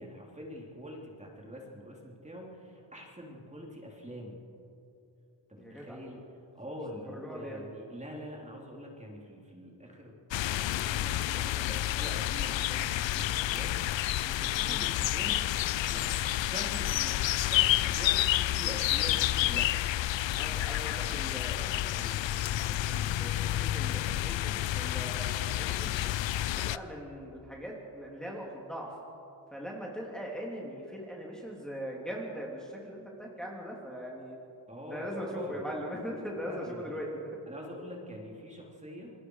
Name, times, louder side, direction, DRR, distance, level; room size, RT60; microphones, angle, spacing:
voice 1, 0.0-4.4 5.5-6.2 6.5-10.1 10.6-19.8 34.7-35.8 36.3-37.1 37.5-39.1, equal, 15° right, -1 dB, 3.7 m, -44 dB
voice 2, 5.6-6.0 7.0-7.6 14.6-14.8 20.3-25.9 26.6-29.0 29.5-34.4 34.9-37.4, equal, ahead, -3 dB, 3.4 m, -41 dB
sound 1, 10.3-26.8, left 14 dB, 70° left, 0.6 m, -29 dB
28.0 x 20.0 x 4.9 m, 2.7 s
cardioid pair, 90°, 47 cm